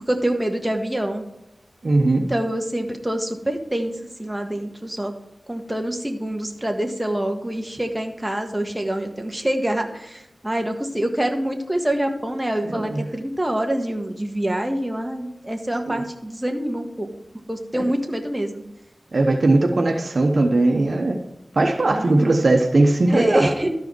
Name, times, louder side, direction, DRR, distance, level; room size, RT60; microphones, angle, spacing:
voice 1, 0.1-1.2 2.3-3.9 4.2-5.1 5.5-17.1 17.5-18.6 22.0-22.4 23.1-23.7, right 1 dB, 15° right, 3 dB, 1.6 m, -26 dB
voice 2, 1.8-2.3 12.6-13.1 15.9-16.0 17.7-17.8 19.1-21.2 21.6-23.6, right 2 dB, 70° right, 4 dB, 1.0 m, -19 dB
13.0 x 4.8 x 4.6 m, 0.91 s
cardioid pair, 40°, 0 cm